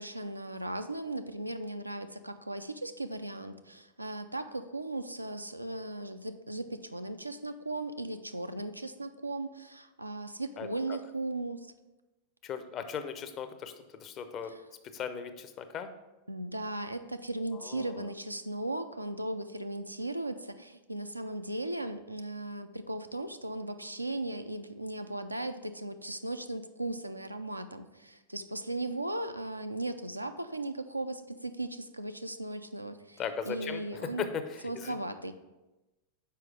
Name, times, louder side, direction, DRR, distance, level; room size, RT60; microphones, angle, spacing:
voice 1, 0.0-11.7 14.5-14.6 16.3-34.3 34.6-35.3, right 2 dB, 85° right, 8 dB, 0.4 m, -37 dB
voice 2, 10.6-11.0 12.4-14.5 14.9-15.9 17.6-18.1 33.2-34.9, left 7 dB, 35° left, 9 dB, 0.6 m, -38 dB
5.6 x 4.7 x 4.8 m, 1.1 s
figure-of-eight pair, 90°, 0 cm